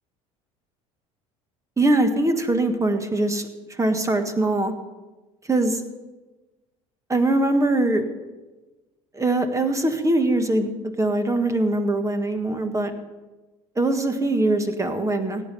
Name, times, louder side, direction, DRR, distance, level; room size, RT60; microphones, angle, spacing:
voice 1, 1.8-3.5 3.8-4.7 5.5-5.8 7.1-8.0 9.1-10.7 11.0-12.9 13.8-15.4, right 2 dB, 15° right, 8 dB, 1.6 m, -22 dB
17.0 x 7.6 x 6.9 m, 1.2 s
hypercardioid pair, 65°, 18 cm